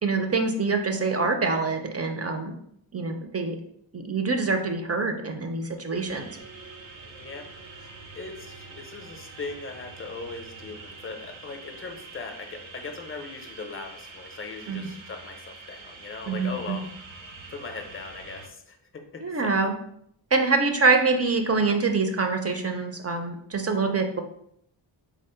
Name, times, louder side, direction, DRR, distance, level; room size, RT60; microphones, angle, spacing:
voice 1, 0.0-2.5 2.9-3.6 3.9-6.4 14.7-14.8 16.3-16.8 19.2-19.7 20.3-24.2, right 4 dB, 35° right, 5 dB, 0.5 m, -25 dB
sound 1, 5.9-18.5, right 4 dB, 80° right, 0.7 m, -45 dB
voice 2, 7.0-16.9 17.5-19.6, left 4 dB, 30° left, 4 dB, 0.6 m, -39 dB
3.7 x 2.0 x 4.2 m, 0.70 s
wide cardioid pair, 85°, 46 cm